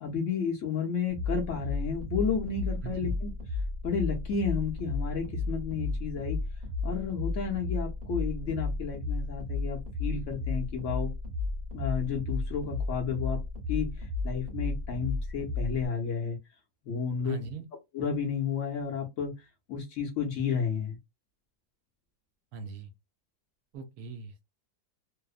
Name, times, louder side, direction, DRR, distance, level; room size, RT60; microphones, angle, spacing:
voice 1, 0.0-3.3 3.8-6.4 6.8-11.1 11.7-13.4 13.7-16.4 16.8-17.4 17.9-19.3 19.7-21.0, left 6 dB, 60° left, 0.9 m, -32 dB
sound 1, 1.1-15.9, left 3 dB, 40° right, 0.9 m, -33 dB
voice 2, 17.2-17.6 22.5-22.9 23.7-24.4, right 5 dB, 75° right, 1.1 m, -40 dB
2.8 x 2.0 x 2.3 m
omnidirectional pair, 1.7 m